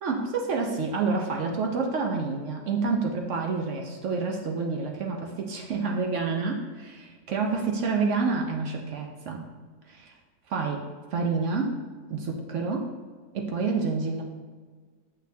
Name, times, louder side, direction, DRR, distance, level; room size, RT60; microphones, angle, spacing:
voice 1, 0.0-9.4 9.9-10.1 10.5-10.8 11.1-11.8 12.1-12.9 13.3-14.2, right 4 dB, 75° right, 1 dB, 1.1 m, -28 dB
7.7 x 6.3 x 2.7 m, 1.5 s
omnidirectional pair, 1.3 m